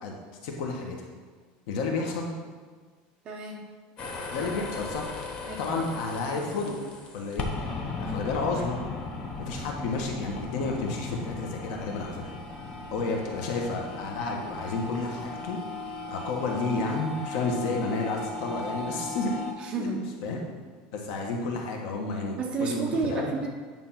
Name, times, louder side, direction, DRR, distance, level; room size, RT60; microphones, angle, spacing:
voice 1, 0.4-1.1 1.7-2.3 4.3-6.8 7.1-7.5 8.0-8.8 9.4-12.2 12.9-15.6 16.1-19.3 19.6-19.9 20.2-20.4 20.9-23.3, left 3 dB, 60° left, 1 dB, 1.4 m, -31 dB
voice 2, 3.2-3.6 4.4-4.5 5.4-5.7 8.0-8.2 12.9-13.2 19.6-20.0 22.4-23.5, right 3 dB, 25° right, 0 dB, 1.0 m, -31 dB
sound 1, 4.0-19.5, left 3 dB, 25° left, 0.9 m, -37 dB
9.2 x 3.5 x 5.8 m, 1.5 s
cardioid pair, 175°, 4 cm